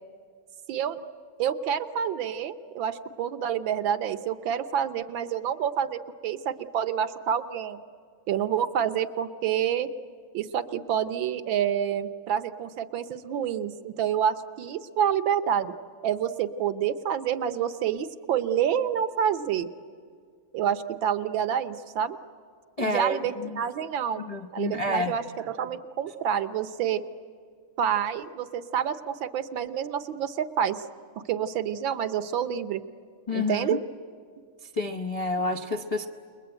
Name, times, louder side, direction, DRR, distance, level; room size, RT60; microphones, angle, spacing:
voice 1, 0.7-1.0 1.4-7.8 8.3-9.9 10.3-15.7 16.0-19.7 20.5-22.2 22.8-24.3 24.5-27.0 27.8-30.8 31.3-32.8 33.3-33.8, right 9 dB, 70° right, 11 dB, 1.6 m, -28 dB
voice 2, 22.8-23.6 24.2-25.1 33.3-33.8 34.8-36.1, left 2 dB, 35° left, 3 dB, 0.5 m, -29 dB
30.0 x 21.5 x 9.0 m, 2.2 s
omnidirectional pair, 2.3 m